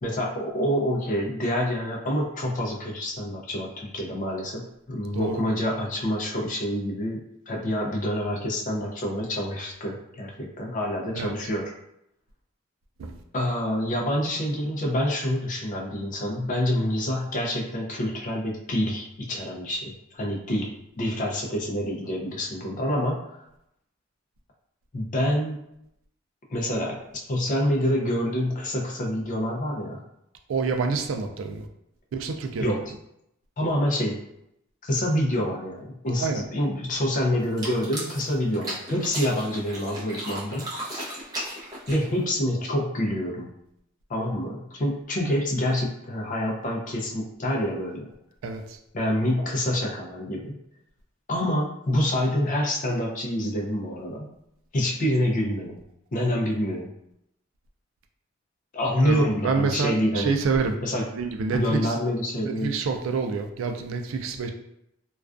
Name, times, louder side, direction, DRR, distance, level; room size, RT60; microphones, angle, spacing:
voice 1, 0.0-11.7 13.3-23.4 24.9-25.6 26.5-30.0 32.6-32.8 33.6-34.2 34.8-40.7 41.9-43.5 44.1-48.1 48.9-50.6 51.3-54.3 54.7-55.8 56.1-56.9 58.7-60.3 60.8-61.1 61.5-62.8, equal, 40° left, -1 dB, 0.5 m, -27 dB
voice 2, 30.5-31.6 32.1-32.7 36.2-36.4 48.4-48.6 59.0-60.7 61.2-61.8 62.4-64.5, right 4 dB, 75° right, 5 dB, 0.3 m, -27 dB
sound 1, 37.4-42.3, right 1 dB, 20° right, 0.6 m, -36 dB
2.3 x 2.2 x 2.4 m, 0.79 s
head